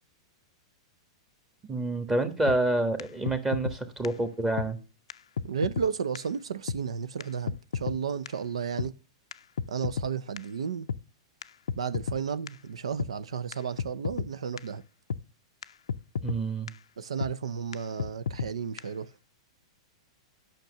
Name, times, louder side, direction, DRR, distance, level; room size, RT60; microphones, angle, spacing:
voice 1, 1.7-4.8 16.2-16.7, right 2 dB, 15° right, 1.5 m, -28 dB
sound 1, 2.5-2.6 3.0-3.1 3.3-3.8 4.0-4.1 4.6-4.7 5.1-5.2 5.4-5.9 6.1-6.2 6.7-6.8 7.2-7.3 7.5-8.0 8.3-8.4 8.8-8.9 9.3-10.1 10.4-10.5 10.9-11.0 11.4-11.5 11.7-12.2 12.5-12.6 13.0-13.1 13.5-13.6 13.8-14.3 14.6-14.7 15.1-15.2 15.6-15.7 15.9-16.4 16.7-16.8 17.2-17.3 17.7-17.8 18.0-18.5 18.8-18.9, left 7 dB, 90° left, 0.4 m, -31 dB
voice 2, 5.4-8.9 9.7-10.9 11.8-14.8 17.0-19.1, right 6 dB, 90° right, 0.5 m, -33 dB
9.0 x 5.9 x 6.4 m
hypercardioid pair, 125°, 3 cm